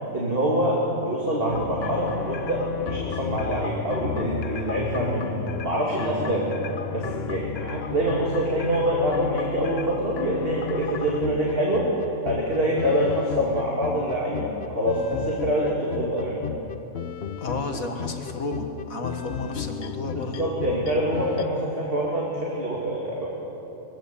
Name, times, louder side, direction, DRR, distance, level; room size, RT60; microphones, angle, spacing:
voice 1, 0.1-5.4 5.6-6.5 6.9-11.9 12.2-16.4 20.2-23.3, right 1 dB, 40° right, -4 dB, 2.7 m, -25 dB
sound 1, 1.5-21.5, left 7 dB, 55° left, 0.8 m, -33 dB
voice 2, 17.4-20.4, left 2 dB, 75° left, 4 dB, 2.1 m, -32 dB
22.5 x 16.0 x 7.1 m, 3.0 s
omnidirectional pair, 1.5 m